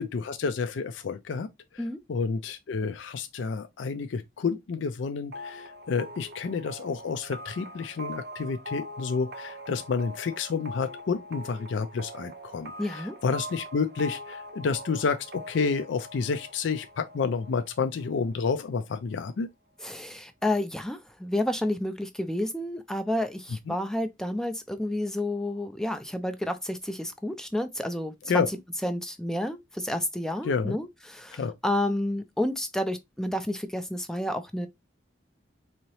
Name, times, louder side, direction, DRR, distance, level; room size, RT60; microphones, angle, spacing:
voice 1, 0.0-1.5 1.7-19.5 23.7-23.8 28.3-28.5 30.4-30.8 31.4-31.5, left 5 dB, 75° left, 0.4 m, -30 dB
sound 1, 5.3-18.8, equal, 55° right, 0.6 m, -43 dB
voice 2, 12.8-13.1 19.8-28.4 28.8-34.7, left 1 dB, 5° left, 0.3 m, -30 dB
3.9 x 2.8 x 3.0 m
head